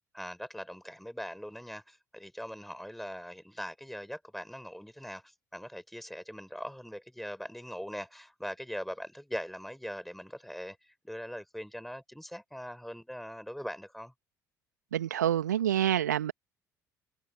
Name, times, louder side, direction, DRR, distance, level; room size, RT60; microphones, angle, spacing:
voice 1, 0.1-14.1, equal, ahead, 6.8 m, -41 dB
voice 2, 14.9-16.3, right 10 dB, 75° right, 2.2 m, -27 dB
figure-of-eight pair, 55°, 9 cm